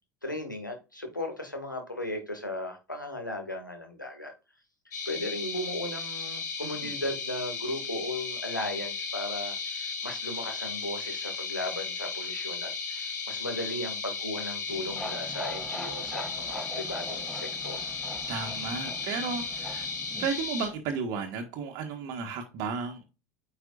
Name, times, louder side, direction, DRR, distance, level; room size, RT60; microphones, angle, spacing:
voice 1, 0.2-4.3 5.1-17.9, left 1 dB, 85° left, 2.1 m, -36 dB
sound 1, 4.9-20.7, left 4 dB, 65° left, 3.0 m, -35 dB
sound 2, 14.7-20.8, equal, ahead, 0.8 m, -43 dB
voice 2, 18.3-19.9 20.2-23.0, right 5 dB, 45° right, 1.6 m, -33 dB
9.4 x 5.6 x 2.6 m
figure-of-eight pair, 80°, 10 cm